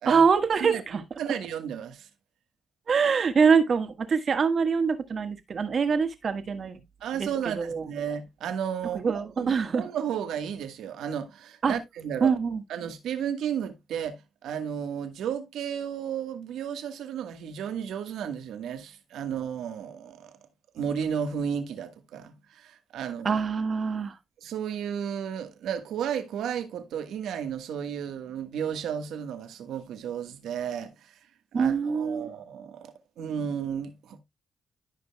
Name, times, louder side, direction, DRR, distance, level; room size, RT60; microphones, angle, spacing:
voice 1, 0.0-1.0 2.9-6.8 7.2-7.3 7.6-7.9 8.9-9.8 11.6-11.8 12.2-12.6 23.2-24.2 31.5-32.3, right 5 dB, 55° right, 1.4 m, -24 dB
voice 2, 1.2-2.1 7.0-9.0 9.4-12.3 12.7-20.4 20.7-23.4 24.4-31.1 31.5-34.2, right 8 dB, 80° right, 1.3 m, -33 dB
14.5 x 5.3 x 2.2 m
cardioid pair, 70°, 0 cm